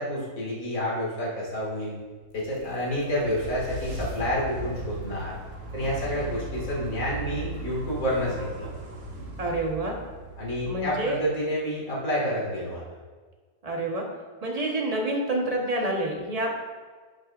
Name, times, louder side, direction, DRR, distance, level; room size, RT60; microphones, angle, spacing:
voice 1, 0.0-1.9 2.3-5.3 5.7-8.7 10.4-12.8, equal, 55° left, -5 dB, 2.4 m, -29 dB
sound 1, 2.1-11.4, right 2 dB, 50° right, 1.4 m, -38 dB
voice 2, 9.4-10.0 10.6-11.2 13.6-14.0 14.4-16.5, right 1 dB, 25° right, 0 dB, 1.0 m, -28 dB
11.0 x 6.3 x 2.5 m, 1.4 s
omnidirectional pair, 1.8 m